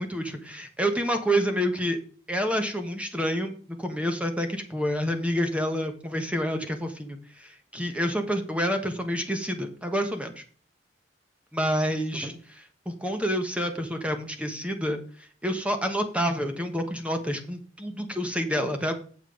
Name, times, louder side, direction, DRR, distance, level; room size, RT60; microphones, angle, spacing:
voice 1, 0.0-2.0 2.3-10.4 11.5-15.0 15.4-19.0, equal, 5° right, 6 dB, 1.4 m, -28 dB
7.6 x 7.5 x 5.0 m, 0.43 s
head